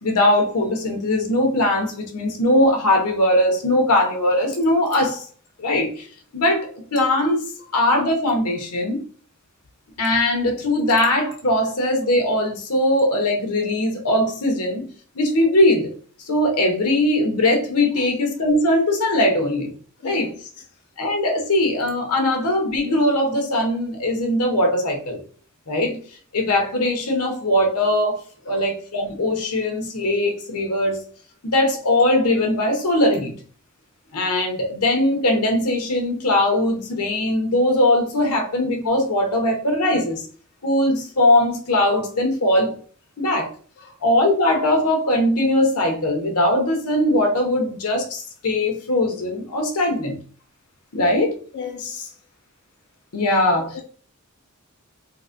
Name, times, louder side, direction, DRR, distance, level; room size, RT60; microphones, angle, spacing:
voice 1, 0.0-5.3 5.6-6.1 6.3-7.4 7.7-9.0 10.0-14.9 15.1-15.9 16.3-19.7 20.0-20.3 21.0-25.2 25.7-26.0 26.3-28.2 28.5-31.0 31.4-33.3 34.1-40.3 40.6-42.8 43.2-43.5 44.0-50.2 50.9-51.4 53.1-53.8, left 1 dB, 85° left, 0.9 m, -20 dB
voice 2, 20.0-20.5 28.5-28.6 43.8-43.9 51.5-52.2 53.5-53.8, left 6 dB, 50° left, 0.4 m, -36 dB
3.9 x 2.2 x 2.5 m
head